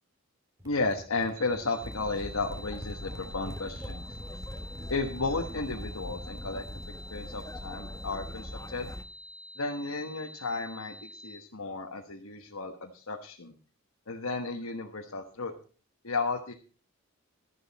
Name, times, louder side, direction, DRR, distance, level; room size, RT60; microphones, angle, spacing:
voice 1, 0.6-4.0 4.9-6.6 7.1-8.9 9.6-13.5 14.1-15.5 16.0-16.5, left 3 dB, 75° left, 1 dB, 1.4 m, -33 dB
sound 1, 0.6-7.0, equal, 15° right, 1.9 m, -46 dB
sound 2, 1.4-11.4, equal, 80° right, 3.1 m, -48 dB
sound 3, 1.8-9.0, left 1 dB, 15° left, 0.9 m, -42 dB
13.5 x 11.5 x 4.2 m, 0.37 s
head